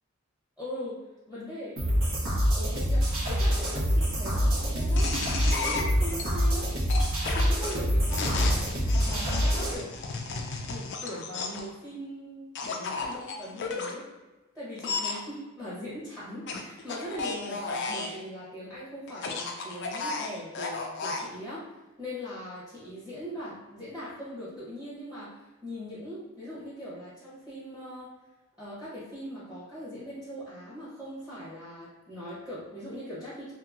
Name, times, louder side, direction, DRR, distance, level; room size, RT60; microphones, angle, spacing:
voice 1, 0.6-1.0 1.3-1.7 2.5-5.1 5.5-6.7 7.3-8.6 9.0-9.9 10.7-14.1 14.5-21.7 22.0-28.1 28.6-33.5, equal, 5° right, -11 dB, 0.9 m, -40 dB
sound 1, 1.8-9.8, equal, 85° right, 1.1 m, -26 dB
sound 2, 5.0-6.2 6.9-11.7 12.5-13.9 14.8-15.2 16.5-18.2 19.1-21.3, left 4 dB, 55° left, 0.4 m, -33 dB
2.9 x 2.7 x 2.4 m, 1.1 s
head